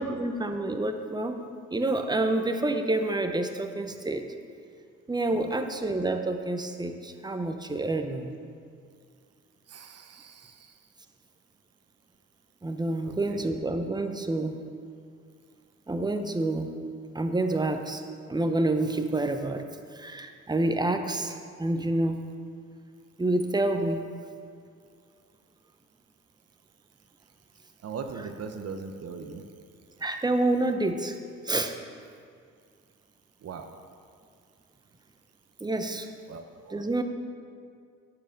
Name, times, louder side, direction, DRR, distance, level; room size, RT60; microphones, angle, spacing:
voice 1, 0.0-1.5 1.7-4.2 5.1-8.3 12.6-14.6 15.9-16.8 17.1-18.0 18.3-19.6 19.9-22.2 23.2-24.0 28.2-28.3 30.0-31.2 31.4-31.7 35.6-36.1 36.7-37.0, right 2 dB, 15° right, 6 dB, 0.8 m, -28 dB
voice 2, 9.7-10.5 13.0-13.4 27.8-29.4 33.4-33.7 36.3-36.8, right 5 dB, 55° right, 6 dB, 0.8 m, -39 dB
11.0 x 4.7 x 6.5 m, 2.2 s
cardioid pair, 90°, 30 cm